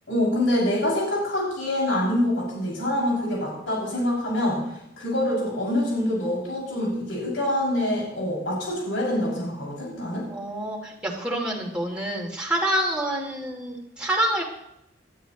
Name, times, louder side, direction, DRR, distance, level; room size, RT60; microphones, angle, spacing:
voice 1, 0.1-4.6 5.0-10.3, left 1 dB, 80° left, -4 dB, 6.5 m, -25 dB
voice 2, 10.3-14.4, right 1 dB, 5° right, -3 dB, 2.8 m, -27 dB
21.0 x 13.0 x 3.1 m, 0.81 s
head